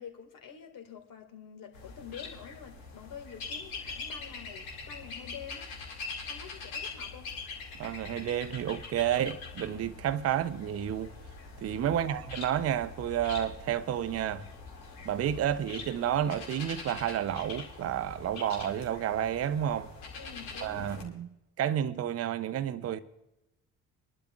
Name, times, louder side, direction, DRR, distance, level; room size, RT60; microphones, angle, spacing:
voice 1, 0.0-5.7 6.3-7.3 11.9-12.2 20.1-20.9, left 7 dB, 50° left, 2.0 m, -47 dB
sound 1, 1.7-21.0, left 4 dB, 75° left, 2.4 m, -43 dB
voice 2, 7.8-11.1 11.6-14.4 15.0-19.9 20.6-21.3 21.6-23.0, right 10 dB, 35° right, 0.7 m, -30 dB
25.5 x 11.5 x 2.4 m
figure-of-eight pair, 45°, 43 cm